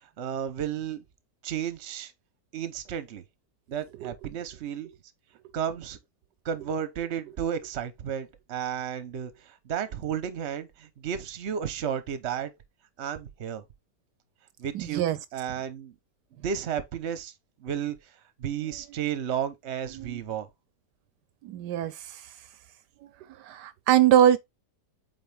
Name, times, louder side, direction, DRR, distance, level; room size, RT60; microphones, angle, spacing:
voice 1, 0.2-1.0 1.4-2.1 2.5-3.2 3.7-4.9 5.5-6.0 6.4-12.5 13.0-13.6 14.6-15.9 16.4-17.3 17.6-18.0 18.4-20.5, right 8 dB, 45° right, 1.0 m, -33 dB
voice 2, 14.7-15.2 20.0-20.2 21.4-21.9 23.5-24.4, right 11 dB, 80° right, 1.2 m, -22 dB
8.3 x 3.9 x 3.4 m
omnidirectional pair, 1.8 m